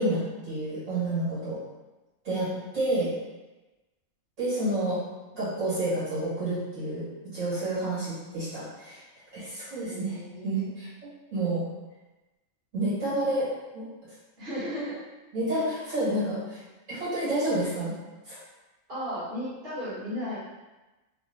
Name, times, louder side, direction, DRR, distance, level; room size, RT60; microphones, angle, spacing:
voice 1, 0.0-1.6 2.2-2.5 2.7-3.1 4.4-5.0 5.3-9.0 9.3-10.2 10.4-10.9 11.3-11.7 12.7-13.5 13.7-13.9 15.3-16.6 16.9-17.9 18.3-18.4, right 1 dB, 65° right, -11 dB, 1.9 m, -29 dB
voice 2, 2.3-2.6 9.8-10.7 14.4-15.0 15.5-15.6 18.9-20.4, equal, 45° right, -12 dB, 1.7 m, -35 dB
3.4 x 2.2 x 4.0 m, 1.1 s
omnidirectional pair, 1.4 m